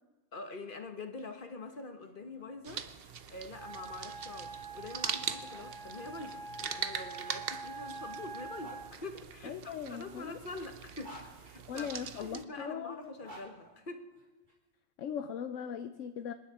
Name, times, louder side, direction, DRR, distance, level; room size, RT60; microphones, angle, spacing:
voice 1, 0.3-14.0, left 3 dB, 40° left, 7 dB, 1.3 m, -45 dB
sound 1, 1.1-5.7 6.6-8.8 9.7-12.1 12.9-14.5, equal, 35° right, 3.3 m, -57 dB
sound 2, 2.6-12.4, right 7 dB, 55° right, 0.9 m, -42 dB
Wind instrument woodwind instrument, 3.5-8.9, right 3 dB, 20° right, 1.0 m, -45 dB
voice 2, 9.4-10.4 11.7-13.0 15.0-16.3, left 8 dB, 75° left, 10 dB, 1.0 m, -39 dB
26.5 x 10.5 x 4.9 m, 1.2 s
omnidirectional pair, 1.3 m